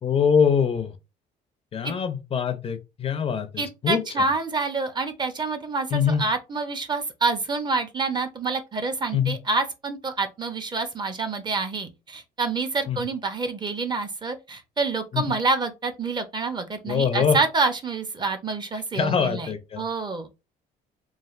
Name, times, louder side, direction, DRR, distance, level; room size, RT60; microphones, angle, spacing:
voice 1, 0.0-1.0 1.7-4.3 5.9-6.2 9.1-9.3 12.9-13.0 15.1-15.3 16.8-17.4 18.9-19.8, left 7 dB, 35° left, 0.4 m, -23 dB
voice 2, 3.6-19.5 19.8-20.3, right 3 dB, 25° right, 0.6 m, -27 dB
3.2 x 2.4 x 2.4 m
cardioid pair, 110°, 17 cm